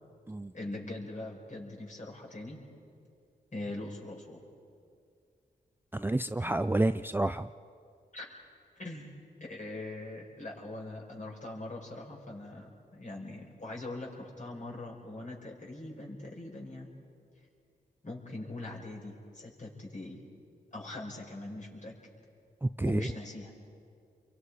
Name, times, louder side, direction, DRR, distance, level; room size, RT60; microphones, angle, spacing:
voice 1, 0.5-2.6 3.5-4.4 8.1-8.3 8.8-9.2 9.5-16.9 18.0-20.2 20.7-21.9 22.8-23.5, left 2 dB, 45° left, -1 dB, 5.1 m, -42 dB
voice 2, 5.9-7.5 22.6-23.1, right 2 dB, 10° right, 11 dB, 0.4 m, -29 dB
28.5 x 23.5 x 4.9 m, 2.4 s
cardioid pair, 60°, 17 cm